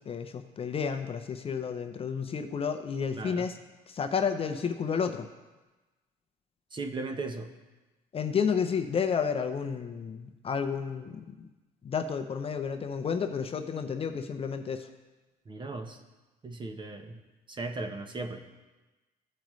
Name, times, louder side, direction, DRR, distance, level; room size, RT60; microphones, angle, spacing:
voice 1, 0.1-3.6 3.9-5.3 8.1-11.5 11.8-14.9, left 6 dB, 35° left, 7 dB, 0.6 m, -31 dB
voice 2, 3.2-3.5 6.7-7.5 15.5-16.0 16.4-17.2 17.5-18.4, right 3 dB, 30° right, 5 dB, 0.9 m, -37 dB
15.0 x 5.0 x 3.1 m, 1.1 s
cardioid pair, 110°, 17 cm